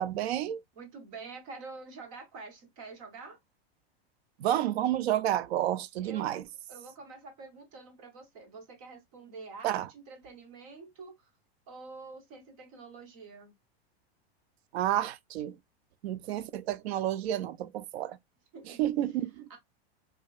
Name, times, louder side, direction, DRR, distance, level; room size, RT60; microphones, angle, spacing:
voice 1, 0.0-0.6 4.4-6.4 9.6-9.9 14.7-15.6 16.0-18.2 18.7-19.6, right 12 dB, 80° right, 0.5 m, -30 dB
voice 2, 0.8-3.4 6.0-6.4 6.7-11.1 11.7-13.5 18.5-18.8 19.5-19.6, right 4 dB, 35° right, 0.8 m, -47 dB
4.7 x 2.3 x 2.3 m
supercardioid pair, 175°, 31 cm